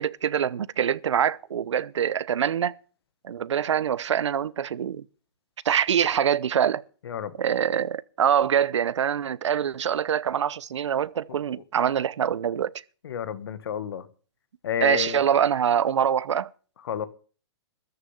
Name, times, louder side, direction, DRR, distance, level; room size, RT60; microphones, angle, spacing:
voice 1, 0.0-2.7 3.2-5.0 5.6-6.8 7.4-12.7 14.8-16.5, right 8 dB, 75° right, 0.8 m, -24 dB
voice 2, 13.0-14.1 14.6-15.2 16.9-17.1, left 8 dB, 55° left, 1.5 m, -30 dB
14.0 x 6.8 x 9.5 m
hypercardioid pair, 170°, 15 cm